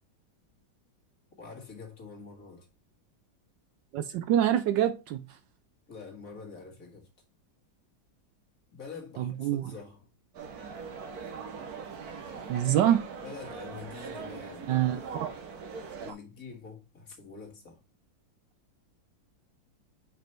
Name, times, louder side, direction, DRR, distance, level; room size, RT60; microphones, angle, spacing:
voice 1, 1.4-2.7 5.9-7.1 8.7-10.1 13.2-15.3 16.0-17.8, left 4 dB, 45° left, 2.0 m, -46 dB
voice 2, 3.9-5.2 9.2-9.7 12.5-13.1 14.7-15.3, right 11 dB, 75° right, 1.1 m, -26 dB
sound 1, 10.3-16.1, right 5 dB, 55° right, 1.4 m, -41 dB
5.5 x 5.1 x 4.4 m
omnidirectional pair, 2.2 m